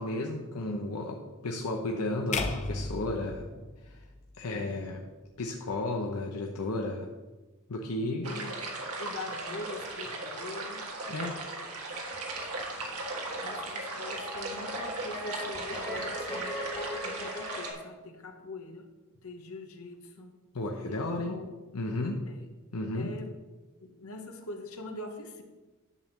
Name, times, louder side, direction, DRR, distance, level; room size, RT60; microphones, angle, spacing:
voice 1, 0.0-3.5 3.8-4.1 4.4-5.0 5.4-7.1 7.7-8.3 11.1-11.4 12.2-12.5 20.5-21.4 21.7-22.3 22.7-23.1, left 2 dB, 85° left, 1 dB, 0.7 m, -33 dB
sound 1, 2.3-4.6, left 3 dB, 30° left, 0.6 m, -35 dB
voice 2, 8.2-8.6 9.0-10.9 12.8-12.9 13.4-16.6 17.0-18.9 19.2-20.4 20.7-21.5 22.3-22.5 22.9-23.3 23.8-25.4, left 2 dB, 70° left, 5 dB, 1.1 m, -43 dB
sound 2, 8.2-17.7, right 2 dB, 85° right, 1.7 m, -37 dB
sound 3, 12.1-17.7, left 1 dB, 15° left, 1.7 m, -40 dB
10.5 x 3.6 x 6.9 m, 1.2 s
head